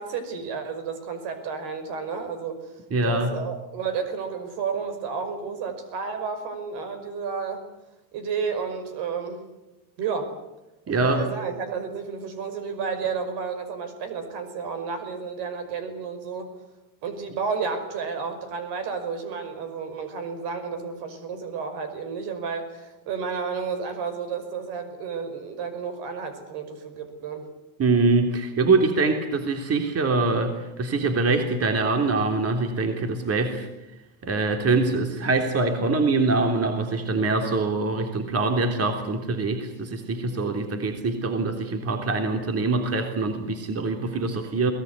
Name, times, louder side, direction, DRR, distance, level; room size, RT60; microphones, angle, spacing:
voice 1, 0.0-2.7 3.0-7.6 8.1-9.4 10.0-10.4 10.9-16.5 17.0-27.5, right 5 dB, 70° right, 9 dB, 5.7 m, -31 dB
voice 2, 2.9-3.4 10.9-11.2 27.8-33.7 34.2-44.7, right 3 dB, 35° right, 5 dB, 3.5 m, -24 dB
23.0 x 18.5 x 9.7 m, 0.97 s
supercardioid pair, 100°, 42 cm